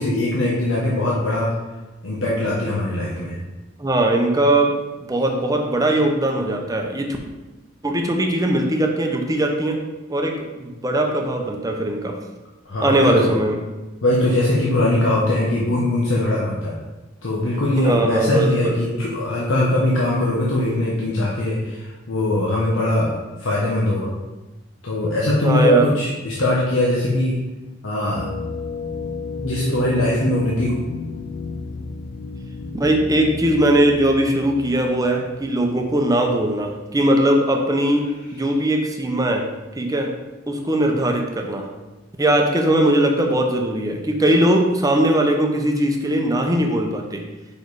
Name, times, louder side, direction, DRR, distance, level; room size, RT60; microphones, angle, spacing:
voice 1, 0.0-1.5 2.0-3.4 12.6-13.3 14.0-16.7 17.2-24.1 24.8-27.4 27.8-28.3 29.4-30.8, left 1 dB, 90° left, -5 dB, 1.1 m, -21 dB
voice 2, 3.8-7.2 7.8-9.8 10.1-12.2 12.8-13.6 17.7-18.8 25.4-25.9 32.7-39.5 39.8-40.1 40.5-41.7 42.2-47.2, right 1 dB, 20° right, 2 dB, 0.8 m, -20 dB
sound 1, 28.1-36.8, left 4 dB, 45° left, 0.3 m, -34 dB
5.3 x 4.7 x 4.7 m, 1.1 s
head